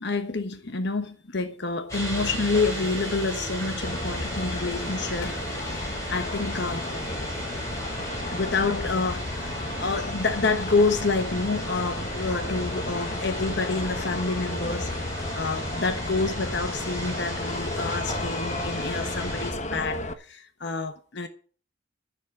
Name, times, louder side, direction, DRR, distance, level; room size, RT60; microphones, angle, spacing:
voice 1, 0.0-6.9 8.3-21.3, left 3 dB, 60° left, 1.1 m, -28 dB
sound 1, 1.9-19.5, right 1 dB, 15° left, 7.9 m, -35 dB
sound 2, 3.8-20.1, left 2 dB, 35° left, 1.3 m, -34 dB
13.0 x 7.5 x 7.6 m
head